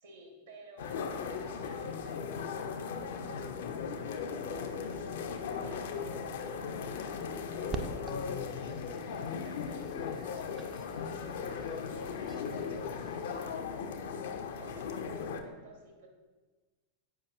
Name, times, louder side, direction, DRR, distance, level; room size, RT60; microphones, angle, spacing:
voice 1, 0.0-14.2 14.5-16.1, right 2 dB, 60° right, 1 dB, 1.2 m, -56 dB
sound 1, 0.8-15.4, left 6 dB, 55° left, 0.4 m, -37 dB
sound 2, 7.7-13.4, right 4 dB, 25° right, 0.4 m, -46 dB
8.0 x 5.2 x 2.3 m, 1.3 s
figure-of-eight pair, 90°, 0 cm